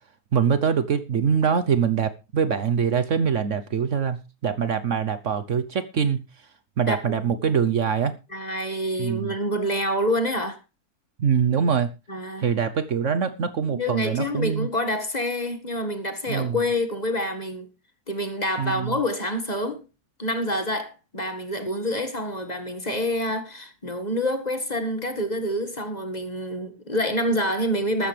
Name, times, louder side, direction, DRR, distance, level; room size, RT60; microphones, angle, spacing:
voice 1, 0.3-6.2 6.8-8.1 9.0-9.3 11.2-11.9 12.4-14.7 16.3-16.6 18.6-18.9, right 7 dB, 60° right, 1.1 m, -24 dB
voice 2, 6.9-7.2 8.3-10.6 12.1-12.5 13.7-17.7 18.1-19.8 20.2-28.1, left 1 dB, 25° left, 1.9 m, -27 dB
15.0 x 13.0 x 3.3 m
omnidirectional pair, 1.6 m